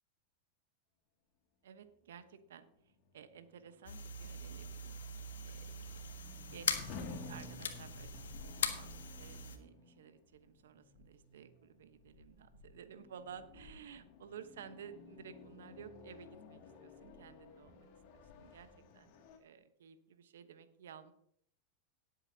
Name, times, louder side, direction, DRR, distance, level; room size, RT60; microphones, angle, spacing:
voice 1, 1.6-2.6 3.1-5.0 5.5-6.0 6.4-18.7 18.9-19.1 19.4-21.1, right 8 dB, 75° right, 10 dB, 1.1 m, -54 dB
sound 1, 2.3-19.4, left 3 dB, 55° left, 2.3 m, -54 dB
sound 2, 3.9-9.6, left 5 dB, 80° left, 1.3 m, -41 dB
18.0 x 8.1 x 2.8 m, 0.67 s
hypercardioid pair, 100°, 0 cm